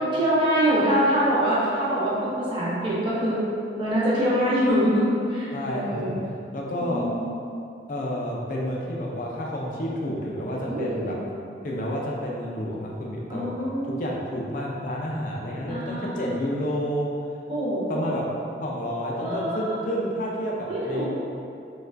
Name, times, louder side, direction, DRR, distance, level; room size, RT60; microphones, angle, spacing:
voice 1, 0.0-3.4 3.8-5.0 5.3-6.1 6.8-7.2 10.7-11.1 13.3-14.0 15.7-16.4 17.5-18.0 19.2-19.8 20.7-21.1, equal, 30° right, -9 dB, 0.8 m, -24 dB
voice 2, 5.5-6.2 6.5-7.1 7.9-11.2 11.6-17.2 17.9-18.2 18.6-21.1, equal, 50° left, -2 dB, 0.4 m, -30 dB
4.4 x 2.3 x 2.4 m, 2.5 s
head